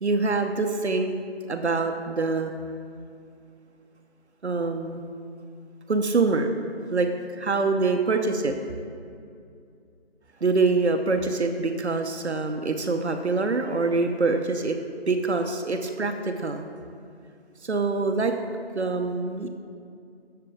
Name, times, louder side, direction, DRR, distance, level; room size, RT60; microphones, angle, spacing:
voice 1, 0.0-1.1 1.5-2.5 4.4-5.0 5.9-6.5 6.9-8.6 10.4-14.8 15.1-16.7 17.6-18.3 18.7-19.5, right 3 dB, 85° right, 6 dB, 0.8 m, -25 dB
11.0 x 6.8 x 3.6 m, 2.4 s
figure-of-eight pair, 170°, 33 cm